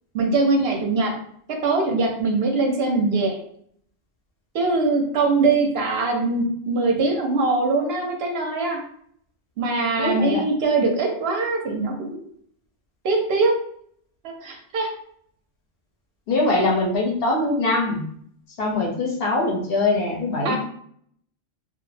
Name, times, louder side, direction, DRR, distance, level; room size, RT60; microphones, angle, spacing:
voice 1, 0.1-1.1 1.5-3.4 4.5-8.8 9.6-12.3 13.0-13.5 14.2-14.9 20.4-20.6, right 3 dB, 65° right, 2 dB, 0.7 m, -22 dB
voice 2, 10.0-10.4 16.3-18.1 18.6-20.6, left 2 dB, 60° left, -2 dB, 0.7 m, -22 dB
2.3 x 2.1 x 3.1 m, 0.65 s
omnidirectional pair, 1.3 m